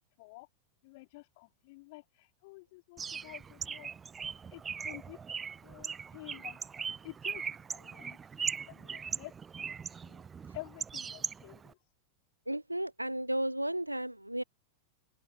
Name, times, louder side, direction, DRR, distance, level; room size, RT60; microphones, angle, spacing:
voice 1, 0.2-0.5 0.8-3.9 4.5-6.6 7.0-7.4 7.7-10.2 10.5-11.8, left 24 dB, 50° left, 3.6 m, -50 dB
Bird, 3.0-11.7, right 6 dB, 20° right, 0.4 m, -40 dB
voice 2, 12.5-14.4, right 1 dB, 85° right, 0.5 m, -33 dB
figure-of-eight pair, 90°, 0 cm